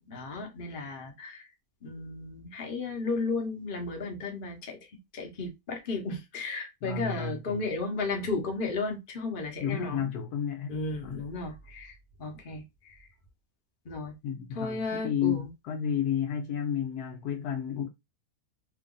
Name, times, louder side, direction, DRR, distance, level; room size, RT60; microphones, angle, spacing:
voice 1, 0.1-1.5 1.8-4.8 5.1-10.1 10.7-13.0 13.8-14.1 14.5-15.5, left 3 dB, 40° left, 1.0 m, -34 dB
voice 2, 6.8-7.6 9.6-10.7 11.0-11.2 14.2-17.9, left 8 dB, 75° left, 1.1 m, -31 dB
2.9 x 2.5 x 3.7 m
omnidirectional pair, 1.7 m